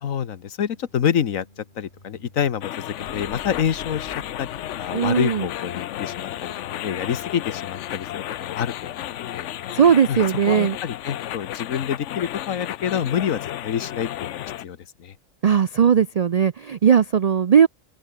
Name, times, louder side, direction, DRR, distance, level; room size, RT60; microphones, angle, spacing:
voice 1, 0.0-4.5 4.8-9.5 10.1-15.1, left 8 dB, 90° left, 1.5 m, -27 dB
sound 1, 0.7-7.4, left 1 dB, 35° left, 6.6 m, -48 dB
sound 2, 2.6-14.6, left 12 dB, 70° left, 0.9 m, -33 dB
voice 2, 4.9-5.4 9.7-10.8 15.4-17.7, right 7 dB, 85° right, 0.3 m, -18 dB
open air
omnidirectional pair, 1.4 m